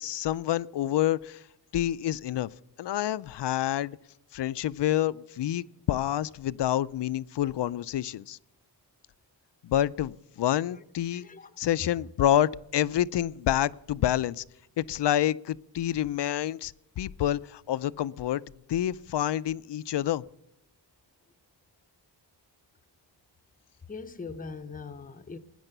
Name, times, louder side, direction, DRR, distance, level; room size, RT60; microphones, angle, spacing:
voice 1, 0.0-1.4 1.7-2.5 2.8-4.0 4.3-8.4 9.6-11.3 11.6-14.4 14.8-18.4 18.7-20.2, left 12 dB, 65° left, 0.5 m, -28 dB
voice 2, 11.1-11.5 23.9-25.4, left 4 dB, 20° left, 0.6 m, -41 dB
19.5 x 10.0 x 6.7 m
wide cardioid pair, 170°, 45 cm